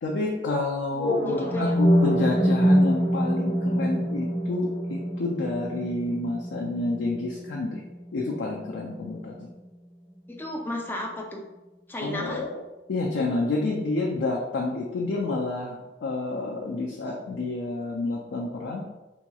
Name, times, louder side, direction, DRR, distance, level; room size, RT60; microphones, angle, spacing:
voice 1, 0.0-7.8 8.1-9.5 12.0-12.6 12.9-18.8, left 2 dB, 90° left, -1 dB, 0.4 m, -29 dB
sound 1, 0.9-8.9, equal, 35° left, 1.1 m, -25 dB
voice 2, 1.3-1.8 2.7-2.8 10.3-11.4 11.9-12.4, left 1 dB, 10° left, 0 dB, 0.4 m, -33 dB
2.9 x 2.8 x 2.3 m, 1.0 s
head